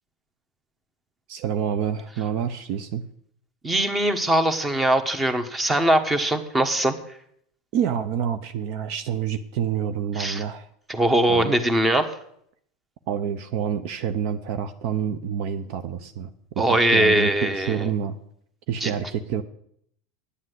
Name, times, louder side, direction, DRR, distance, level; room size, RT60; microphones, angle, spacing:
voice 1, 1.3-3.0 7.7-10.7 11.3-11.6 13.1-18.2 18.7-19.4, right 8 dB, 60° right, 10 dB, 0.7 m, -28 dB
voice 2, 3.6-7.0 10.2-10.4 10.9-12.1 16.6-17.9 18.8-18.9, right 1 dB, 15° right, 9 dB, 1.3 m, -21 dB
10.0 x 7.5 x 8.0 m, 0.68 s
supercardioid pair, 110°, 0 cm